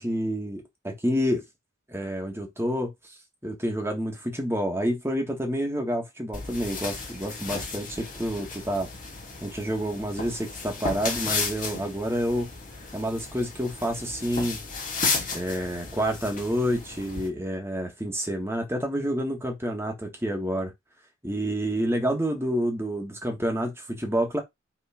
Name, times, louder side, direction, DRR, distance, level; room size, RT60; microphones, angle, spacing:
voice 1, 0.0-1.4 1.9-2.9 3.4-8.9 9.4-12.5 12.9-14.6 15.3-20.7 21.2-24.4, equal, 15° right, 1.6 m, -28 dB
sound 1, 6.3-17.3, left 4 dB, 40° left, 2.9 m, -34 dB
5.8 x 3.7 x 5.0 m
head